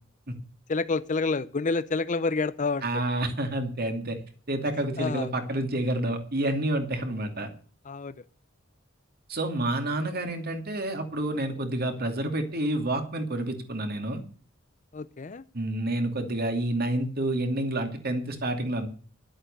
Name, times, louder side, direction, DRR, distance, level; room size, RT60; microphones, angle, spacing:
voice 1, 0.7-2.8 5.0-5.3 7.9-8.1 14.9-15.4, left 4 dB, 40° left, 15 dB, 0.6 m, -28 dB
voice 2, 2.8-4.2 4.5-7.5 9.3-14.2 15.5-18.9, right 1 dB, 50° right, 6 dB, 2.6 m, -29 dB
11.5 x 8.8 x 6.8 m, 0.43 s
head